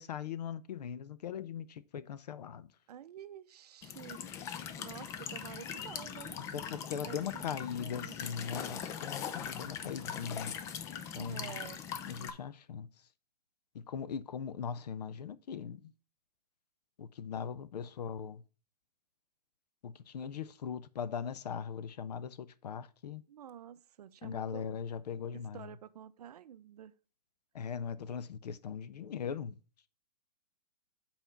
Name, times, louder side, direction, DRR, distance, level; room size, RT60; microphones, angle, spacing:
voice 1, 0.0-2.7 6.4-10.5 11.1-11.5 12.1-12.9 13.7-15.9 17.0-18.4 19.8-23.2 24.2-25.7 27.5-29.6, left 7 dB, 75° left, 0.7 m, -40 dB
voice 2, 2.9-4.2 4.8-6.5 7.0-8.1 11.2-11.8 23.3-24.6 25.3-26.9, right 10 dB, 70° right, 0.6 m, -49 dB
Walk footsteps / Chirp tweet / Stream, 3.8-12.3, left 8 dB, 15° left, 0.3 m, -41 dB
5.7 x 4.4 x 5.9 m
hypercardioid pair, 145°, 21 cm